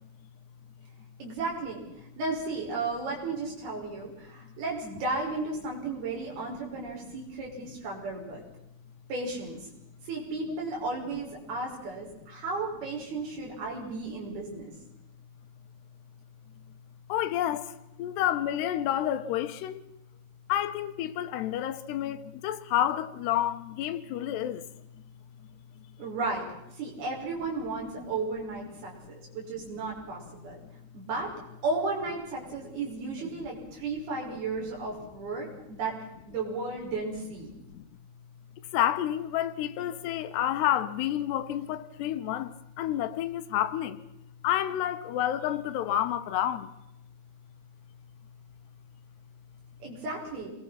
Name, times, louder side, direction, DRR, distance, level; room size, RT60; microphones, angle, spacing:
voice 1, 1.2-1.8 2.2-8.4 9.1-9.7 10.0-14.7 26.0-26.5 26.8-30.6 30.9-31.3 31.6-36.0 36.3-37.5 49.8-50.5, right 3 dB, 65° right, 7.7 m, -34 dB
voice 2, 17.1-19.8 20.5-24.7 33.3-33.4 37.7-37.8 38.7-44.0 44.4-46.7, left 11 dB, 85° left, 3.2 m, -29 dB
26.5 x 21.5 x 5.9 m
omnidirectional pair, 4.7 m